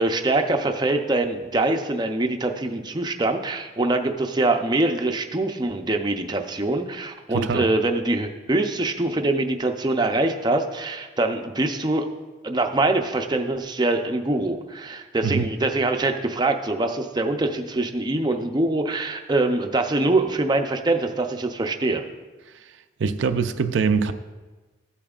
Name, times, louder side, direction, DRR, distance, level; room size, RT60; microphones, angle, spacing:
voice 1, 0.0-12.1 12.4-22.0, right 2 dB, 20° right, 4 dB, 0.5 m, -24 dB
voice 2, 7.3-7.7 15.2-15.4 23.0-24.1, right 5 dB, 75° right, 9 dB, 0.4 m, -23 dB
14.5 x 8.6 x 2.4 m, 1.3 s
head